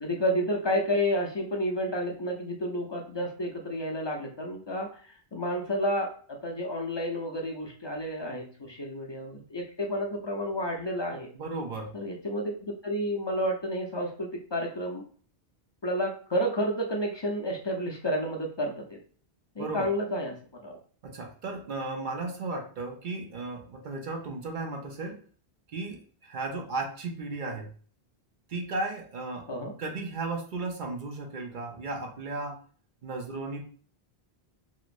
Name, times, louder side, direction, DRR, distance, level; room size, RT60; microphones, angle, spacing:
voice 1, 0.0-11.3 11.9-15.0 15.8-19.0 19.6-20.8 29.5-29.7, equal, 35° left, 0 dB, 0.4 m, -31 dB
voice 2, 11.3-11.9 19.6-19.9 21.0-25.2 25.7-27.7 28.5-29.5 29.8-32.6 33.0-33.6, right 3 dB, 55° right, 3 dB, 0.7 m, -35 dB
3.0 x 2.9 x 2.5 m, 0.43 s
omnidirectional pair, 1.0 m